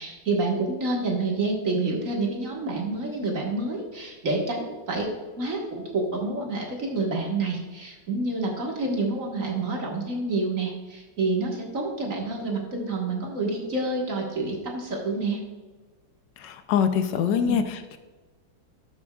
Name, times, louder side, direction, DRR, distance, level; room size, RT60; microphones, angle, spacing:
voice 1, 0.0-5.1 5.4-15.4 17.4-17.6, right 3 dB, 45° right, -1 dB, 1.8 m, -28 dB
voice 2, 16.4-18.0, left 8 dB, 75° left, 9 dB, 1.2 m, -24 dB
12.5 x 7.1 x 2.3 m, 1.3 s
omnidirectional pair, 2.0 m